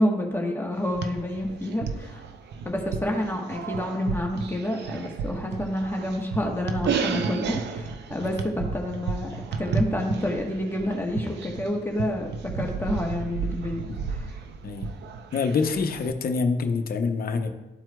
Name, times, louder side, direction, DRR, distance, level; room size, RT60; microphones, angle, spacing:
voice 1, 0.0-2.2 2.6-9.3 9.6-13.9, left 1 dB, 10° left, 0 dB, 1.2 m, -28 dB
sound 1, 0.7-16.1, right 5 dB, 75° right, 0.6 m, -33 dB
voice 2, 15.3-17.5, left 4 dB, 55° left, 6 dB, 0.8 m, -25 dB
12.5 x 4.4 x 2.3 m, 1.1 s
cardioid pair, 75°, 18 cm